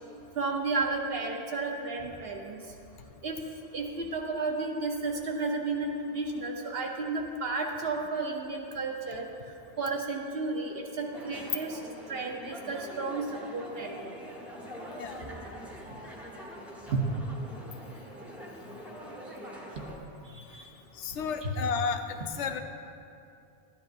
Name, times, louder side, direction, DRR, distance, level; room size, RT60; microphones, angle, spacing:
voice 1, 0.4-2.6 3.2-3.4 3.7-9.3 9.8-11.8 12.1-14.1 16.9-17.1 19.8-19.9 20.3-20.7 21.4-21.5, right 3 dB, 60° right, 1 dB, 1.1 m, -32 dB
sound 1, 11.1-20.0, equal, ahead, 1.1 m, -44 dB
voice 2, 21.0-22.6, left 6 dB, 80° left, 7 dB, 0.9 m, -32 dB
13.0 x 10.5 x 2.6 m, 2.6 s
omnidirectional pair, 1.2 m